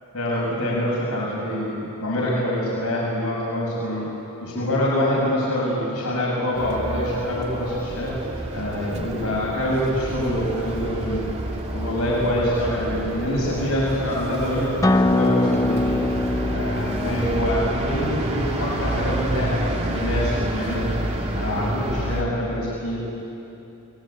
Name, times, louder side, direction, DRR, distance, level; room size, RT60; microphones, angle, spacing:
voice 1, 0.1-4.1 4.4-8.1 8.5-11.3 11.7-16.0 16.5-20.9 21.3-23.0, equal, 80° left, -5 dB, 7.1 m, -25 dB
sound 1, 6.6-22.2, right 1 dB, 30° right, 2.3 m, -29 dB
Acoustic guitar, 14.8-20.0, left 1 dB, 15° left, 0.7 m, -24 dB
29.5 x 20.5 x 9.0 m, 2.9 s
head